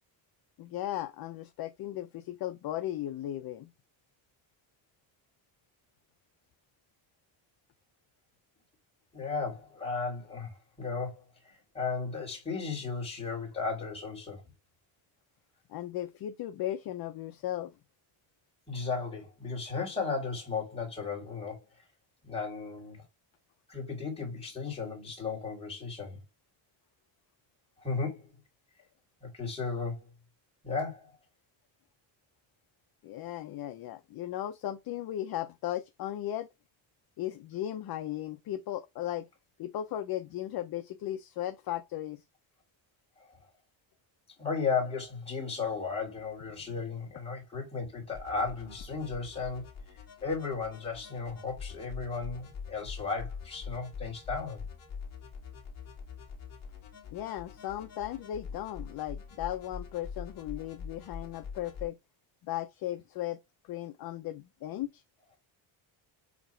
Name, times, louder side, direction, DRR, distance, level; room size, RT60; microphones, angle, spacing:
voice 1, 0.6-3.7 15.7-17.7 33.0-36.5 37.2-39.3 39.6-42.2 57.1-62.0 62.4-65.0, left 13 dB, 50° left, 0.6 m, -36 dB
voice 2, 9.1-14.4 18.7-21.6 22.2-23.0 23.7-26.2 27.8-28.3 29.2-30.1 30.6-31.1 43.2-43.3 44.4-49.6 50.2-54.6, left 4 dB, 10° left, 2.5 m, -35 dB
sound 1, 48.1-61.8, left 6 dB, 30° left, 2.0 m, -44 dB
7.3 x 2.9 x 4.4 m
cardioid pair, 180°, 49 cm